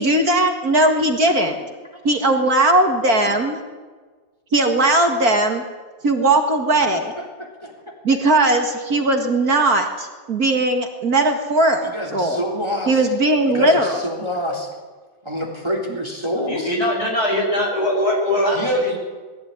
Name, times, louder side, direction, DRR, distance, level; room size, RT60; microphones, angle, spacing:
voice 1, 0.0-1.6 2.0-3.6 4.5-5.6 6.0-7.1 8.0-12.4 12.9-14.0, right 2 dB, 50° right, 4 dB, 2.3 m, -18 dB
voice 2, 7.2-7.7 11.8-13.0 13.5-14.7 15.2-16.7 18.6-19.0, equal, 15° right, 0 dB, 3.5 m, -26 dB
voice 3, 16.5-19.0, left 1 dB, 50° left, 0 dB, 7.0 m, -21 dB
21.0 x 15.5 x 9.6 m, 1.4 s
omnidirectional pair, 2.1 m